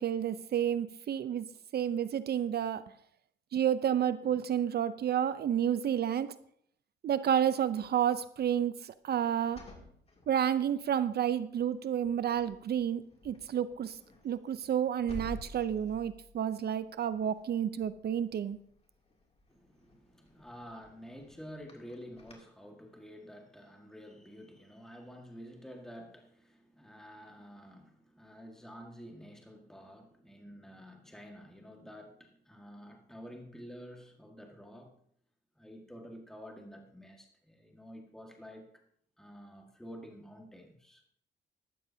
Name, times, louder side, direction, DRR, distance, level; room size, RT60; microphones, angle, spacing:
voice 1, 0.0-1.5 1.7-2.8 3.5-6.4 7.0-9.6 10.3-14.0 14.2-18.6, right 9 dB, 55° right, 14 dB, 0.6 m, -30 dB
sound 1, 9.4-11.0 11.5-11.8 12.0-22.3, left 2 dB, 30° left, 2.7 m, -52 dB
voice 2, 19.5-34.9 35.6-38.8 39.2-41.1, equal, ahead, 2 dB, 1.7 m, -50 dB
14.0 x 12.5 x 2.8 m, 0.65 s
cardioid pair, 90°, 20 cm